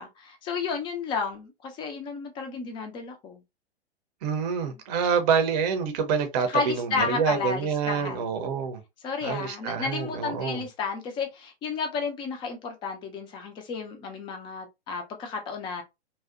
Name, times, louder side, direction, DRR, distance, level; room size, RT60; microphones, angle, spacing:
voice 1, 0.0-3.4 6.5-8.3 9.0-15.8, left 5 dB, 15° left, 0.4 m, -32 dB
voice 2, 4.2-8.8 9.2-10.6, right 6 dB, 40° right, 0.6 m, -27 dB
2.6 x 2.1 x 2.4 m
figure-of-eight pair, 110°, 32 cm